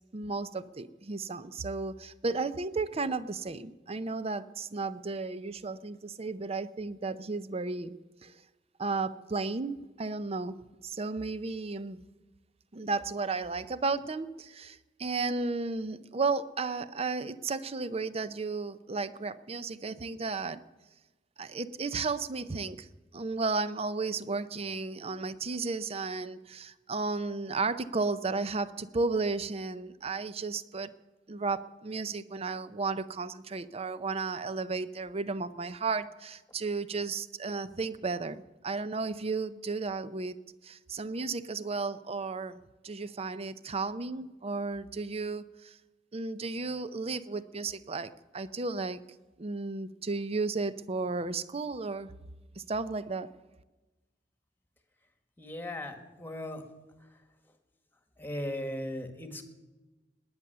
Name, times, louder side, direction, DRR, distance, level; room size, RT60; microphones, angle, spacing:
voice 1, 0.1-8.3 8.8-10.6 10.8-12.0 12.7-20.6 21.4-22.9 23.1-30.9 31.3-40.4 40.6-42.6 42.8-45.8 46.1-49.0 49.4-52.1 52.6-53.3, right 3 dB, 35° right, 14 dB, 0.6 m, -34 dB
voice 2, 55.4-56.6 58.2-59.5, left 1 dB, 10° left, 6 dB, 1.6 m, -37 dB
19.5 x 9.7 x 6.8 m, 1.2 s
head